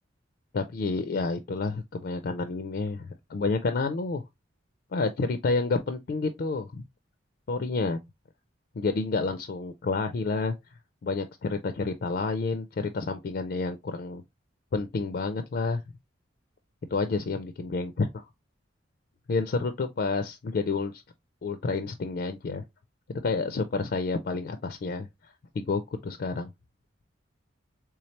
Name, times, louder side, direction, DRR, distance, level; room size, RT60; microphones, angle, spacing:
voice 1, 0.5-4.2 4.9-6.8 7.5-8.0 8.8-10.5 11.0-14.2 14.7-15.8 16.9-18.2 19.3-21.0 21.4-22.6 23.2-25.1 25.6-26.5, left 3 dB, 50° left, 0.4 m, -29 dB
3.5 x 3.2 x 2.8 m
head